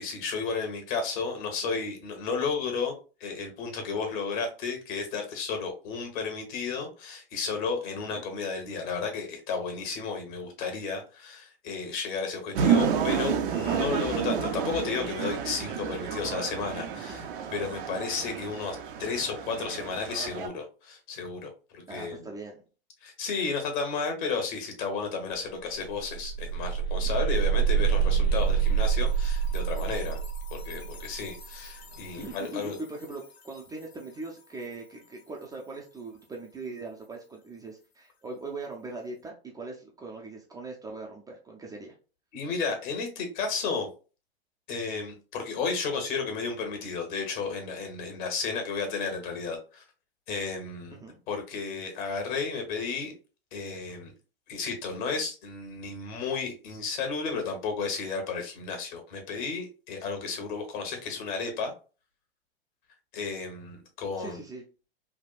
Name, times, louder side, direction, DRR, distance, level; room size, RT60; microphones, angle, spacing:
voice 1, 0.0-2.9 3.2-17.2 17.5-22.3 23.0-30.2 30.5-32.8 42.3-43.9 44.7-49.8 50.3-51.0 51.3-53.1 53.5-54.1 54.5-61.7 63.1-64.4, left 5 dB, 55° left, 4 dB, 1.2 m, -33 dB
sound 1, 12.5-20.5, right 7 dB, 60° right, 0.6 m, -30 dB
voice 2, 16.9-17.3 17.9-18.1 21.9-22.6 27.0-27.1 32.2-41.9 50.9-51.2 64.2-64.6, right 3 dB, 10° right, -1 dB, 0.4 m, -41 dB
sound 2, 25.3-25.4 25.7-32.5, right 7 dB, 90° left, 0.6 m, -27 dB
3.4 x 2.3 x 2.3 m, 0.35 s
hypercardioid pair, 105°, 30 cm